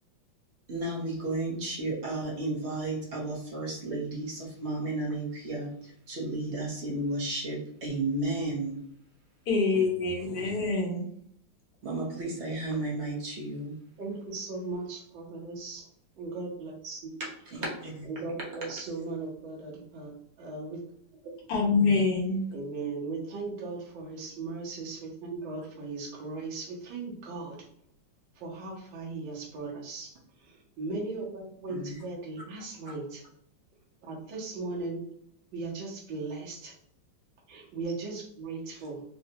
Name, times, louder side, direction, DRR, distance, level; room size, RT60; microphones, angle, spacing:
voice 1, 0.7-8.7 11.8-13.8 17.4-18.2 18.9-19.2 31.7-32.0 38.7-38.8, right 2 dB, 50° right, -3 dB, 0.8 m, -33 dB
voice 2, 9.5-11.1 21.5-22.4, left 4 dB, 65° left, -1 dB, 1.3 m, -25 dB
voice 3, 14.0-15.8 16.2-17.2 18.1-20.1 20.4-20.8 21.2-21.4 22.5-27.6 28.4-30.1 30.8-33.2 34.0-35.0 35.5-36.7 37.5-39.0, right 3 dB, 80° right, -3 dB, 1.6 m, -37 dB
3.9 x 2.1 x 2.7 m, 0.66 s
omnidirectional pair, 2.1 m